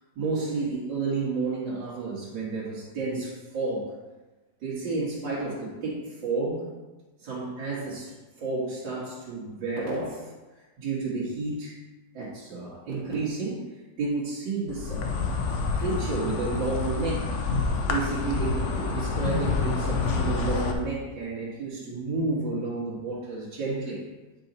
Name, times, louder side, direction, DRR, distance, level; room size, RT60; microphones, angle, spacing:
voice 1, 0.2-3.9 4.6-6.7 7.2-8.1 8.4-10.3 10.8-11.7 12.1-15.2 15.7-17.4 17.9-24.0, right 3 dB, 80° right, -8 dB, 2.4 m, -31 dB
Insect, 14.7-20.7, left 4 dB, 55° left, 0.9 m, -28 dB
9.1 x 4.3 x 4.0 m, 1.2 s
omnidirectional pair, 2.0 m